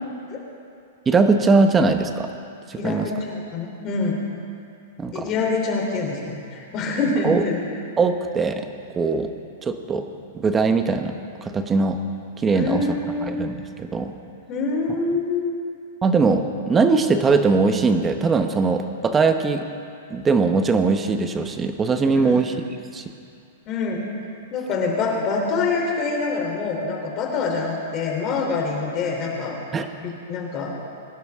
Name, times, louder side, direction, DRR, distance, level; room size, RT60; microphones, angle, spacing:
voice 1, 1.1-2.3 2.7-3.1 5.0-5.3 7.2-7.4 8.0-8.7 8.9-9.3 9.6-10.0 10.3-11.1 11.4-12.0 12.4-12.8 13.2-14.1 16.0-19.6 20.1-22.5 22.9-23.0 29.7-29.9, right 4 dB, 15° right, 7 dB, 1.0 m, -20 dB
voice 2, 2.7-4.2 5.1-7.6 12.5-13.3 14.5-15.6 22.1-22.4 23.7-24.0 24.5-29.6 30.0-30.8, left 3 dB, 35° left, -1 dB, 3.4 m, -25 dB
22.5 x 11.0 x 3.6 m, 2.5 s
hypercardioid pair, 140°, 0 cm